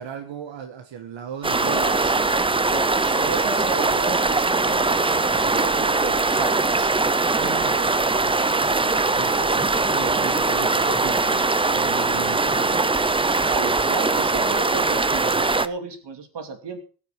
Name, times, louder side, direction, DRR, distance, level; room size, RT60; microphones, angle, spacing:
voice 1, 0.0-1.9 7.3-12.9, right 8 dB, 90° right, 1.5 m, -37 dB
sound 1, 1.4-15.7, right 3 dB, 10° right, 0.5 m, -21 dB
voice 2, 1.6-6.9 13.5-16.8, right 4 dB, 65° right, 2.7 m, -34 dB
18.0 x 6.6 x 5.9 m
wide cardioid pair, 155°, 44 cm